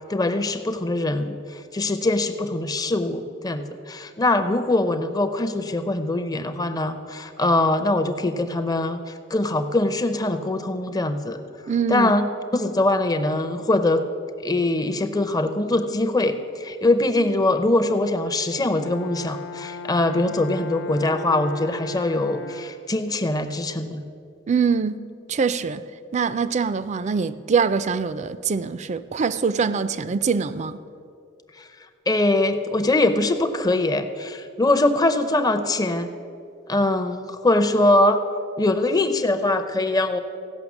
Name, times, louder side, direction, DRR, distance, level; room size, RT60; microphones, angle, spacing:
voice 1, 0.1-11.4 11.9-12.3 12.5-14.0 14.4-24.0 31.6-31.7 32.1-36.1 36.7-38.2 38.6-40.2, left 2 dB, 20° left, 0.6 m, -22 dB
voice 2, 11.7-12.2 24.5-25.8 26.1-30.8, right 5 dB, 35° right, 0.4 m, -24 dB
Brass instrument, 18.5-22.9, left 1 dB, 60° left, 0.6 m, -36 dB
16.0 x 5.7 x 7.1 m
head